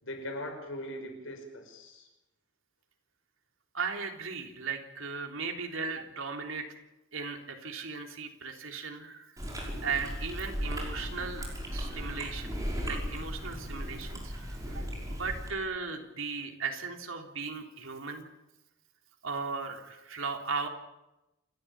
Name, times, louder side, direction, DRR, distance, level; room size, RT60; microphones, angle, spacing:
voice 1, 0.0-2.1, left 1 dB, 75° left, 4 dB, 5.5 m, -40 dB
voice 2, 3.7-6.6 7.1-9.3 9.8-18.3 19.2-20.7, right 4 dB, 85° right, 3 dB, 3.4 m, -37 dB
Chewing mastication, 9.4-15.5, equal, 15° right, 5.9 m, -36 dB
28.5 x 13.5 x 8.8 m, 0.95 s
head